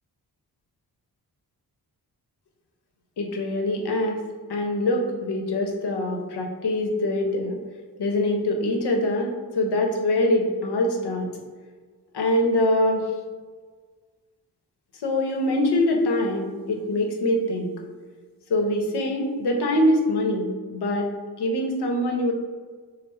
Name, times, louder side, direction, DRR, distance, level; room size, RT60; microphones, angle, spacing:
voice 1, 3.2-4.2 4.5-7.6 8.0-11.3 12.1-13.0 15.0-17.8 18.5-21.1 21.4-22.3, left 1 dB, 85° left, 2 dB, 0.8 m, -24 dB
5.3 x 2.1 x 4.3 m, 1.5 s
wide cardioid pair, 160°, 39 cm